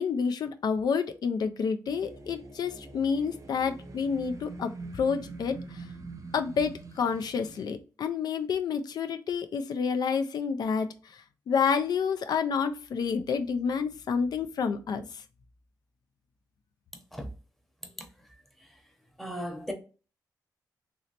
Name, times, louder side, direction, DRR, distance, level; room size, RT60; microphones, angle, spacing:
voice 1, 0.0-5.9 6.3-15.2, left 6 dB, 70° left, 0.3 m, -29 dB
sound 1, 1.9-7.6, right 3 dB, 50° right, 0.7 m, -44 dB
voice 2, 19.2-19.7, equal, 5° left, 0.8 m, -36 dB
3.1 x 2.9 x 2.8 m
cardioid pair, 80°, 7 cm